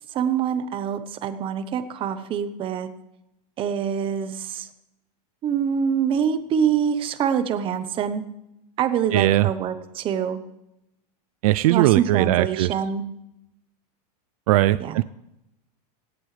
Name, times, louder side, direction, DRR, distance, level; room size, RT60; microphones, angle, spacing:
voice 1, 0.1-2.9 3.6-4.7 5.4-8.2 8.8-10.4 11.7-13.0 14.8-15.0, right 8 dB, 25° right, 11 dB, 1.0 m, -25 dB
voice 2, 9.1-9.5 11.4-12.7 14.5-15.0, right 15 dB, 60° right, 16 dB, 0.5 m, -19 dB
17.5 x 16.5 x 3.3 m, 0.87 s
supercardioid pair, 160°, 21 cm